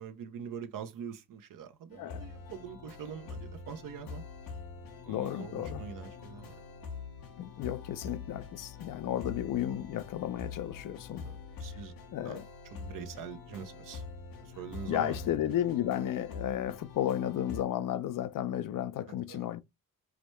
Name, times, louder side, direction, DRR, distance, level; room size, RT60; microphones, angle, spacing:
voice 1, 0.0-4.2 5.0-6.5 11.2-11.9 12.2-12.4 12.7-14.0 14.4-15.3 19.3-19.5, right 7 dB, 70° right, 0.7 m, -44 dB
sound 1, 1.9-17.6, left 4 dB, 90° left, 0.8 m, -45 dB
voice 2, 5.1-5.8 7.4-11.2 12.1-12.5 14.9-19.6, left 11 dB, 70° left, 0.5 m, -33 dB
4.9 x 2.1 x 3.0 m
cardioid pair, 70°, 34 cm